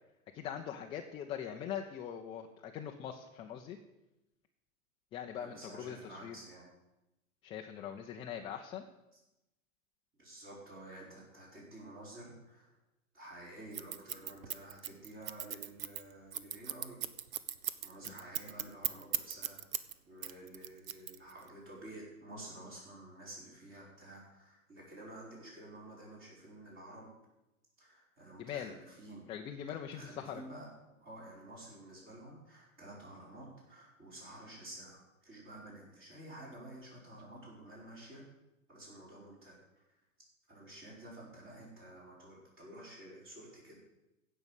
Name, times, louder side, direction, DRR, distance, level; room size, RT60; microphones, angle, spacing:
voice 1, 0.3-3.8 5.1-6.4 7.4-8.9 18.0-18.1 28.4-28.7 29.3-30.4, left 9 dB, 15° left, 2 dB, 0.4 m, -42 dB
voice 2, 5.4-6.7 10.2-12.8 13.1-17.0 17.8-27.1 27.8-29.3 29.9-30.7 31.0-38.2 38.7-39.8 40.5-43.8, right 1 dB, 25° right, -4 dB, 4.9 m, -51 dB
Scissors, 13.7-19.9 20.2-21.5, right 10 dB, 65° right, 0.9 m, -37 dB
16.0 x 5.5 x 8.1 m, 0.94 s
figure-of-eight pair, 105°, 44 cm